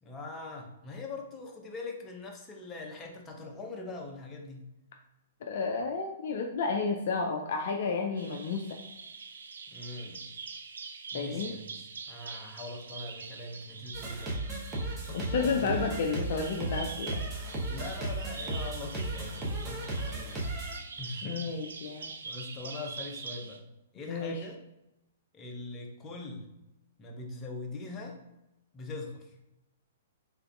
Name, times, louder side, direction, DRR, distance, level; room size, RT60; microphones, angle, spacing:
voice 1, 0.0-4.7 9.7-10.2 11.1-14.4 15.4-15.9 17.7-20.5 21.0-21.6 22.2-23.6 23.9-24.6 25.3-26.5 27.0-28.2 28.7-29.3, left 3 dB, 20° left, 1 dB, 0.7 m, -42 dB
voice 2, 5.4-8.7 11.1-11.6 15.1-17.2 21.2-22.1 24.1-24.3, left 4 dB, 55° left, 3 dB, 0.4 m, -31 dB
Bird vocalization bird call bird song, 8.2-23.6, right 5 dB, 65° right, 0.4 m, -44 dB
sound 1, 13.9-20.8, right 2 dB, 20° right, 0.9 m, -35 dB
3.8 x 3.4 x 2.3 m, 0.91 s
figure-of-eight pair, 115°, 0 cm